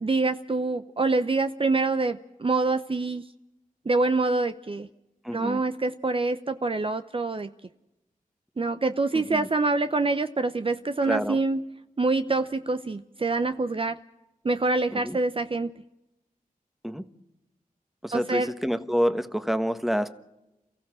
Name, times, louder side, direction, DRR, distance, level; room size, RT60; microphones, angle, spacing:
voice 1, 0.0-3.2 3.9-4.9 5.3-7.5 8.6-11.6 12.0-14.0 14.4-15.7 18.1-18.5, right 3 dB, 40° right, 0.7 m, -26 dB
voice 2, 5.2-5.6 9.1-9.5 11.0-11.4 14.9-15.2 16.8-17.0 18.0-20.1, equal, ahead, 1.3 m, -28 dB
29.0 x 15.0 x 6.3 m
wide cardioid pair, 60°, 15 cm